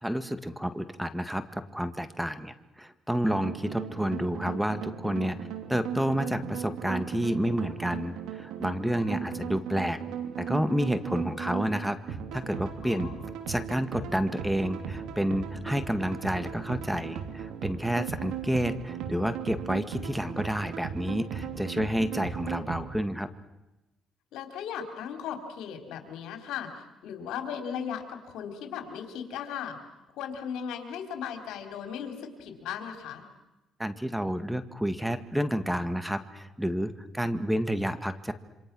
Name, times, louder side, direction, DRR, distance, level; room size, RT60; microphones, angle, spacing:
voice 1, 0.0-5.4 5.7-10.0 10.4-13.1 13.5-23.3 33.8-38.3, equal, 5° right, 11 dB, 1.9 m, -30 dB
sound 1, 3.3-23.0, right 8 dB, 85° right, 2.9 m, -37 dB
voice 2, 9.0-9.4 12.8-13.2 24.3-29.8 30.2-33.2, left 8 dB, 85° left, 5 dB, 4.1 m, -37 dB
27.5 x 26.0 x 6.3 m, 1.0 s
cardioid pair, 85°, 0 cm